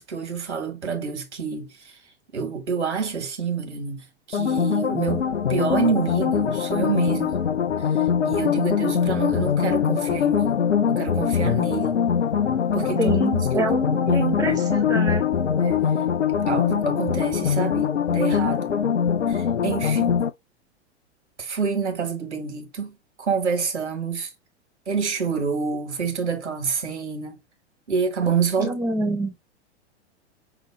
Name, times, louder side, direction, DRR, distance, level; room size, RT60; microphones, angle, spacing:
voice 1, 0.0-2.0 2.3-7.4 7.9-12.0 12.7-13.7 14.1-14.7 15.6-15.8 16.3-18.7 19.3-20.2 21.4-24.3 24.9-27.4 27.9-28.8, right 6 dB, 75° right, 1.3 m, -28 dB
sound 1, 4.3-20.3, left 7 dB, 80° left, 0.6 m, -22 dB
voice 2, 13.0-15.3 28.6-29.3, right 2 dB, 5° right, 0.7 m, -26 dB
5.6 x 2.2 x 3.4 m
figure-of-eight pair, 95°, 35 cm